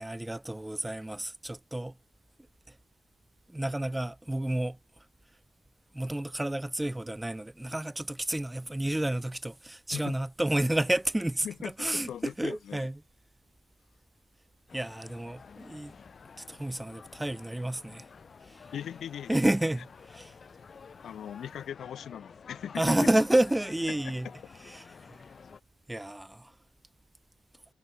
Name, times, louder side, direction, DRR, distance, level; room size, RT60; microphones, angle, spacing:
voice 1, 0.0-1.9 2.7-2.8 3.5-4.8 5.9-13.0 14.7-15.9 16.5-18.1 18.5-18.6 19.3-20.3 22.8-24.3 24.6-25.2 25.9-26.5, right 1 dB, 10° right, 2.1 m, -30 dB
voice 2, 11.4-12.8 18.7-19.4 21.0-22.8 23.9-24.1, left 9 dB, 65° left, 3.2 m, -39 dB
sound 1, 14.7-25.6, left 5 dB, 40° left, 2.2 m, -51 dB
cardioid pair, 90°, 0 cm